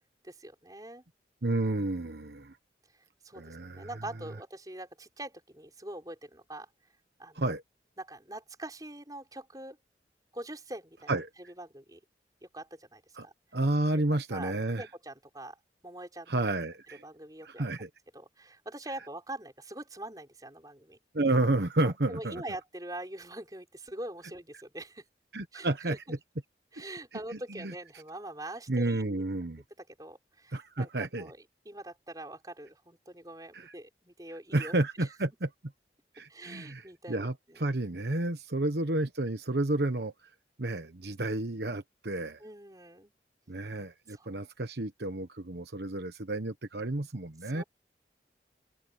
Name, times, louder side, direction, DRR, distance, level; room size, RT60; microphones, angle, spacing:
voice 1, 0.2-1.0 3.2-6.7 7.2-7.5 8.0-9.8 10.3-11.1 11.6-12.0 12.4-13.3 14.3-15.6 15.8-16.3 17.0-17.6 18.1-21.0 21.8-25.0 25.5-26.0 26.7-29.2 29.8-30.9 31.2-31.4 31.6-34.7 35.0-35.1 36.3-37.7 38.5-38.7 41.0-41.2 42.4-43.1 44.1-44.4 47.4-47.6, right 1 dB, 20° right, 4.9 m, -44 dB
voice 2, 1.4-2.6 3.3-3.9 7.3-7.6 11.1-11.3 13.2-13.3 13.5-14.8 16.3-17.0 17.4-17.9 21.1-22.4 25.3-26.2 27.5-27.7 28.7-29.6 30.5-31.3 33.5-33.7 34.5-35.5 36.1-40.1 40.6-42.4 43.5-47.6, right 2 dB, 65° right, 1.2 m, -31 dB
open air
head